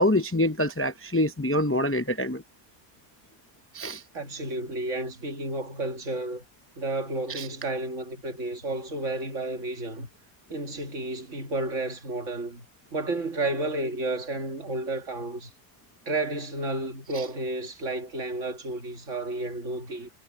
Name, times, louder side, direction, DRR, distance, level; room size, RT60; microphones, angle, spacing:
voice 1, 0.0-2.4 3.7-4.0 7.3-7.5, left 1 dB, 15° left, 0.4 m, -25 dB
voice 2, 4.1-6.4 6.8-10.1 10.5-12.7 12.9-15.5 16.1-20.1, right 2 dB, 80° right, 2.3 m, -31 dB
omnidirectional pair, 1.3 m